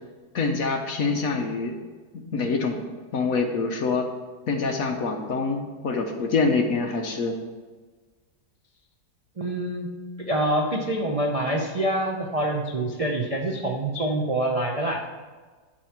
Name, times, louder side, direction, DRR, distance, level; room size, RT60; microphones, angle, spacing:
voice 1, 0.3-1.8 2.1-2.8 3.1-4.1 4.5-7.4, left 4 dB, 55° left, 4 dB, 1.2 m, -25 dB
voice 2, 9.4-9.9 10.3-15.1, right 1 dB, 45° right, -1 dB, 0.4 m, -26 dB
10.5 x 4.6 x 5.8 m, 1.4 s
omnidirectional pair, 1.9 m